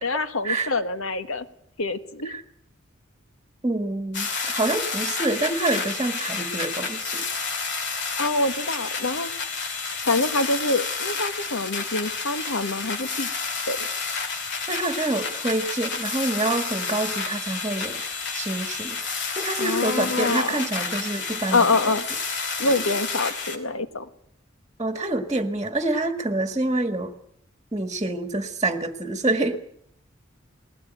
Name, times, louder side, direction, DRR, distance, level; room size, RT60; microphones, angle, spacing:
voice 1, 0.0-1.5 1.8-2.3 8.2-9.3 10.0-13.3 13.7-13.8 19.6-20.7 21.5-22.0 22.6-24.1, left 3 dB, 85° left, 11 dB, 1.5 m, -25 dB
voice 2, 3.6-7.2 14.7-18.0 18.3-19.0 19.4-21.8 22.7-22.9 24.8-27.1 27.7-29.6, right 2 dB, 20° right, 8 dB, 1.6 m, -27 dB
sound 1, 4.1-23.6, left 4 dB, 60° left, 3.0 m, -30 dB
20.5 x 17.5 x 9.1 m, 0.72 s
head